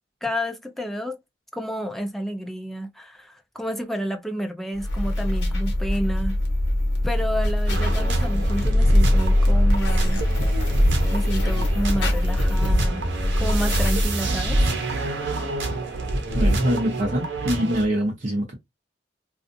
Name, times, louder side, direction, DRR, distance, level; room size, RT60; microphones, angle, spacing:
voice 1, 0.2-1.2 1.5-6.4 7.0-10.2 11.1-13.1 13.4-14.6, equal, ahead, 0.4 m, -30 dB
sound 1, 4.7-14.6, left 1 dB, 80° left, 0.8 m, -22 dB
sound 2, 7.7-17.9, right 1 dB, 80° right, 0.8 m, -26 dB
voice 2, 16.3-18.5, equal, 45° right, 0.7 m, -24 dB
2.4 x 2.4 x 2.5 m
head